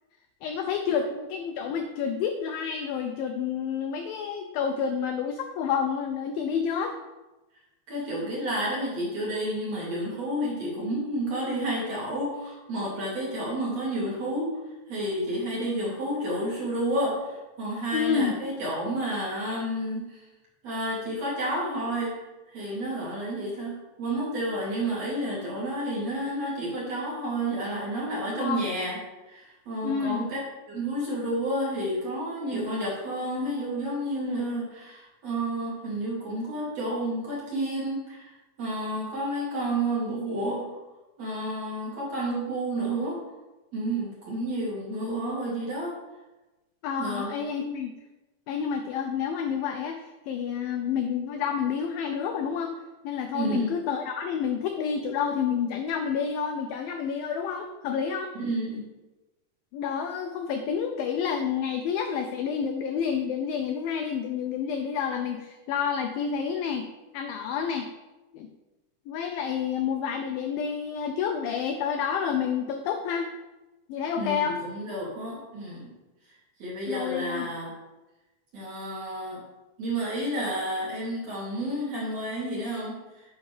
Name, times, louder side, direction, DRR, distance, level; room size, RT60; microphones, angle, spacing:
voice 1, 0.4-6.9 17.9-18.3 28.4-28.7 29.8-30.2 46.8-47.9 48.5-52.8 53.0-58.3 59.7-66.9 67.1-67.9 68.3-68.5 69.1-73.3 73.9-74.6 76.9-77.5, left 7 dB, 85° left, 5 dB, 2.0 m, -29 dB
voice 2, 7.9-14.6 14.9-20.2 20.6-22.1 22.5-29.0 29.3-30.4 30.7-40.7 41.2-43.2 43.7-45.9 47.0-47.5 53.3-53.8 58.3-58.8 74.2-75.9 76.6-77.7 78.5-79.4 79.8-83.0, right 1 dB, 45° right, -5 dB, 3.2 m, -30 dB
8.8 x 4.9 x 6.5 m, 1.1 s
omnidirectional pair, 4.8 m